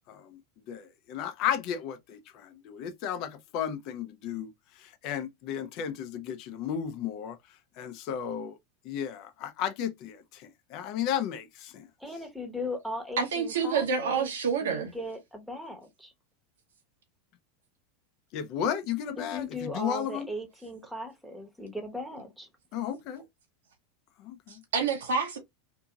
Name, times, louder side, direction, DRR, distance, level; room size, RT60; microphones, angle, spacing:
voice 1, 0.1-0.4 0.7-4.5 4.8-7.4 7.8-8.6 8.8-11.9 18.3-20.3 22.7-23.2 24.2-24.6, left 9 dB, 50° left, 0.6 m, -34 dB
voice 2, 12.0-14.3 14.6-16.1 19.2-22.5, left 1 dB, ahead, 1.0 m, -38 dB
voice 3, 13.2-14.9 24.5-25.4, right 5 dB, 75° right, 0.8 m, -28 dB
2.7 x 2.7 x 2.3 m
hypercardioid pair, 95°, 0 cm